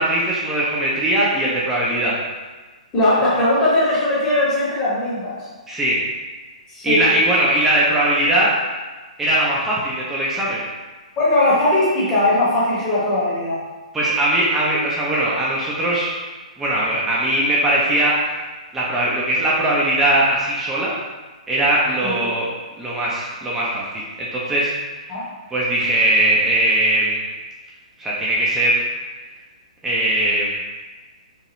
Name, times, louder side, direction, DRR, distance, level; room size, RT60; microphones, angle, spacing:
voice 1, 0.0-2.1 5.7-6.0 6.8-8.5 9.2-10.6 13.9-16.1 16.6-18.4 18.7-21.0 21.5-22.5 22.8-25.1 25.5-27.2 28.0-28.9 29.8-30.5, right 1 dB, 10° right, -6 dB, 0.4 m, -20 dB
voice 2, 2.9-5.5 6.7-7.0 11.2-13.6 22.0-22.2 25.1-25.2, left 1 dB, 20° left, -8 dB, 0.8 m, -19 dB
2.9 x 2.2 x 3.0 m, 1.3 s
figure-of-eight pair, 120°, 4 cm